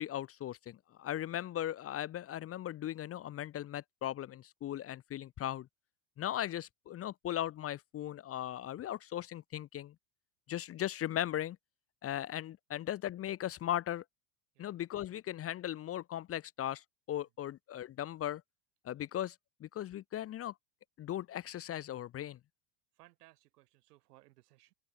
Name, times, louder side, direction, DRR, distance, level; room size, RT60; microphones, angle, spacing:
voice 1, 0.0-5.7 6.2-9.9 10.5-11.6 12.0-14.0 14.6-18.4 18.8-19.4 19.6-20.5 21.0-22.4, left 12 dB, 30° left, 0.8 m, -38 dB
voice 2, 22.9-24.7, right 17 dB, 80° right, 6.6 m, -63 dB
open air
supercardioid pair, 110°, 46 cm